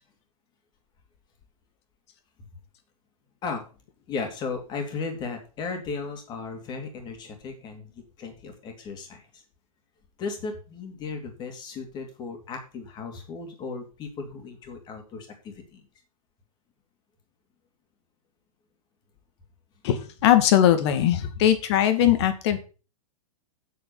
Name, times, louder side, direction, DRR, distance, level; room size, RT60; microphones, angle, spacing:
voice 1, 4.1-9.4 10.2-15.8 22.0-22.1, left 4 dB, 25° left, 4 dB, 2.8 m, -36 dB
voice 2, 19.8-22.6, left 11 dB, 50° left, 9 dB, 2.1 m, -20 dB
8.2 x 6.8 x 7.1 m, 0.35 s
supercardioid pair, 160°, 19 cm